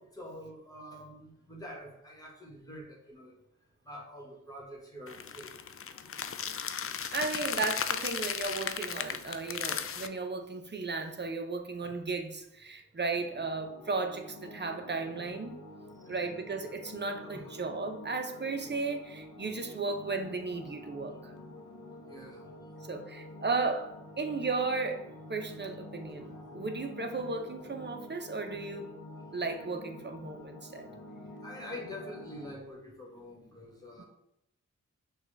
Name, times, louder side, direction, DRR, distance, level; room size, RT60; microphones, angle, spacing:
voice 1, 0.0-3.4 3.8-5.5 5.9-6.2 11.8-12.0 13.3-13.4 15.9-16.2 17.2-17.6 22.1-22.7 26.1-26.3 30.9-31.0 31.4-34.0, left 1 dB, 10° left, -1 dB, 1.6 m, -46 dB
sound 1, 5.1-10.1, left 7 dB, 45° left, 0.4 m, -35 dB
voice 2, 7.1-15.6 16.1-21.3 22.9-28.9 29.3-30.9 34.0-34.1, right 3 dB, 35° right, 5 dB, 0.7 m, -35 dB
sound 2, 13.1-32.5, left 1 dB, 75° left, 0.8 m, -48 dB
6.2 x 2.4 x 3.4 m, 0.83 s
cardioid pair, 40°, 31 cm